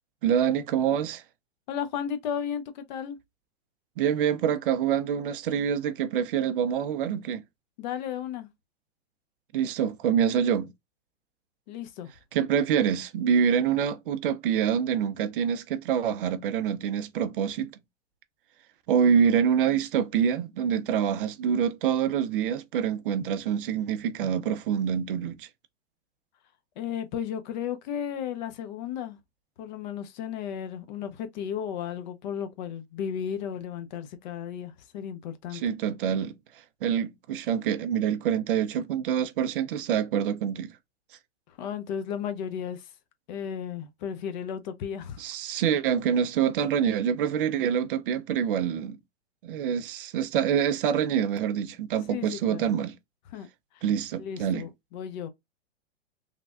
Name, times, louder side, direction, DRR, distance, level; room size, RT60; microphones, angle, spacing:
voice 1, 0.2-1.2 4.0-7.4 9.5-10.7 12.3-17.7 18.9-25.5 35.5-36.3 36.8-40.7 45.2-49.0 49.4-52.9 53.8-54.6, right 8 dB, 50° right, 0.5 m, -26 dB
voice 2, 1.7-3.2 7.8-8.5 11.7-12.1 26.8-29.2 29.6-35.6 41.5-42.9 43.3-45.2 52.1-52.8 53.3-53.5 53.7-53.8 54.2-55.3, left 8 dB, 40° left, 0.6 m, -34 dB
3.3 x 2.2 x 2.4 m
hypercardioid pair, 130°, 36 cm